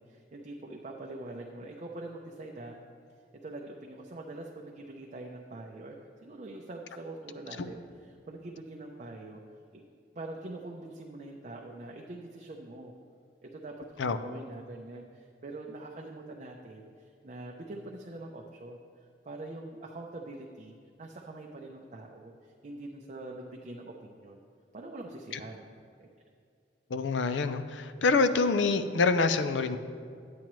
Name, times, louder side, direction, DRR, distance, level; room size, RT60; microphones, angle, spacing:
voice 1, 0.0-2.8 3.4-9.4 9.7-9.8 10.1-12.9 13.4-24.4 24.7-25.7 26.0-26.1, right 2 dB, 40° right, 0 dB, 0.6 m, -44 dB
voice 2, 26.9-29.8, left 4 dB, 85° left, 11 dB, 0.5 m, -26 dB
10.5 x 8.6 x 3.1 m, 2.3 s
head